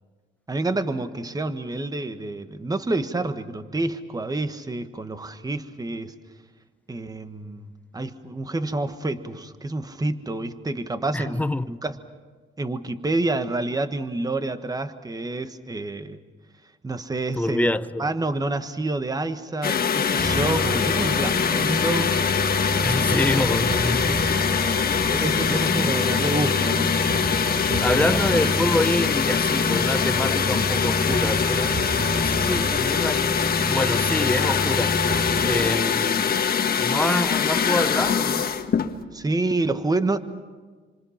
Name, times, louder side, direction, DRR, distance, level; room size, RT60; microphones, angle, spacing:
voice 1, 0.5-6.1 6.9-12.0 12.6-16.2 16.8-17.7 18.0-22.2 25.1-27.0 27.7-28.1 39.1-40.2, right 2 dB, 20° right, 1.4 m, -28 dB
voice 2, 11.1-11.8 17.4-18.1 22.8-24.3 25.5-25.9 27.8-31.8 32.1-35.0 35.4-36.5 36.8-38.6, left 1 dB, 5° left, 0.7 m, -26 dB
sound 1, 19.6-39.0, left 7 dB, 50° left, 1.5 m, -23 dB
sound 2, 20.2-35.8, right 1 dB, 50° right, 3.5 m, -29 dB
27.5 x 25.5 x 5.9 m
cardioid pair, 90°, 20 cm